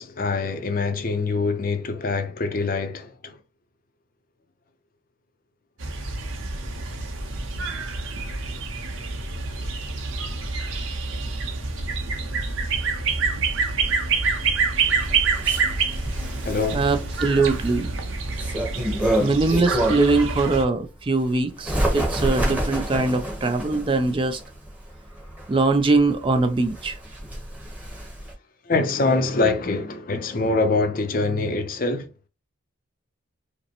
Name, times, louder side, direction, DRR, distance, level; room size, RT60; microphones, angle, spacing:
voice 1, 0.0-3.4 16.4-16.9 19.0-19.3 19.8-19.9 28.7-32.1, left 3 dB, 40° left, 0.5 m, -24 dB
sound 1, 5.8-20.6, right 4 dB, 70° right, 0.8 m, -27 dB
Bird, 14.8-20.2 20.7-28.3, right 1 dB, 5° right, 0.9 m, -29 dB
voice 2, 16.7-17.9 19.2-24.4 25.5-27.0, right 3 dB, 25° right, 0.3 m, -22 dB
5.0 x 2.1 x 2.9 m
head